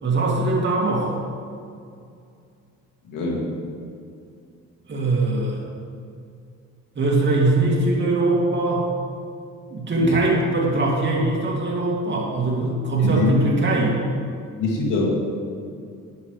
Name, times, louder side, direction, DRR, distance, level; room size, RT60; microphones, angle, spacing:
voice 1, 0.0-1.2 4.9-5.6 7.0-8.9 9.7-14.0, right 2 dB, 35° right, -3 dB, 2.5 m, -21 dB
voice 2, 3.1-3.5 10.0-10.1 13.0-13.4 14.6-15.1, left 3 dB, 90° left, -3 dB, 2.5 m, -23 dB
11.0 x 9.9 x 3.3 m, 2.4 s
cardioid pair, 90°, 30 cm